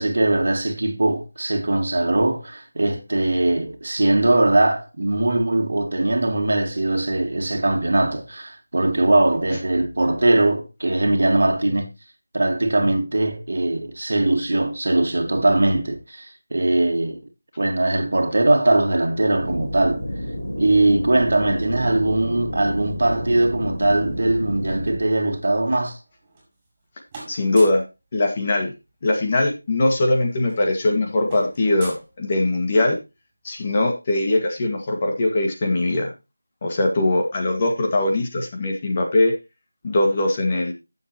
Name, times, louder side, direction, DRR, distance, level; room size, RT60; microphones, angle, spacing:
voice 1, 0.0-11.9 12.3-17.2 17.6-20.0 20.6-26.0, right 2 dB, 60° right, 1.9 m, -20 dB
sound 1, 19.4-25.0, equal, 80° left, 4.0 m, -30 dB
sound 2, 26.0-26.8 27.1-27.9 29.3-29.4 29.6-29.8 30.1-32.7, right 2 dB, 15° right, 4.6 m, -42 dB
voice 2, 27.3-27.8 28.1-28.7 29.0-33.0 33.4-36.1 36.6-39.3 39.8-40.7, left 2 dB, 25° left, 1.9 m, -21 dB
14.5 x 7.2 x 3.0 m
figure-of-eight pair, 170°, 0 cm